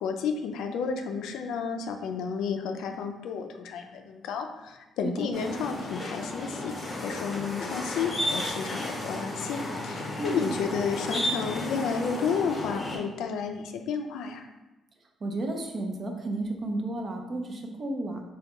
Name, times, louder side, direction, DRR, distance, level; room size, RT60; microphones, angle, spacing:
voice 1, 0.0-6.8 7.0-14.5, left 6 dB, 85° left, 5 dB, 0.3 m, -31 dB
voice 2, 5.0-5.3 10.2-10.4 15.2-18.2, right 2 dB, 45° right, 3 dB, 0.5 m, -32 dB
sound 1, 5.3-13.0, left 1 dB, 30° left, 0.8 m, -33 dB
3.2 x 2.2 x 2.9 m, 1.0 s
cardioid pair, 90°, 0 cm